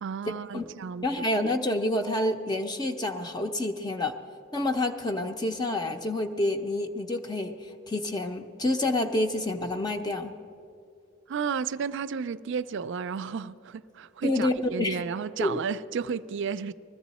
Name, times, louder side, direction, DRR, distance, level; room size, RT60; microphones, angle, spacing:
voice 1, 0.0-1.1 11.3-16.7, right 6 dB, 60° right, 0.4 m, -32 dB
voice 2, 1.0-4.1 4.5-7.5 7.9-10.3 14.2-15.0 15.4-15.6, left 1 dB, 20° left, 0.6 m, -28 dB
20.5 x 14.0 x 4.1 m
head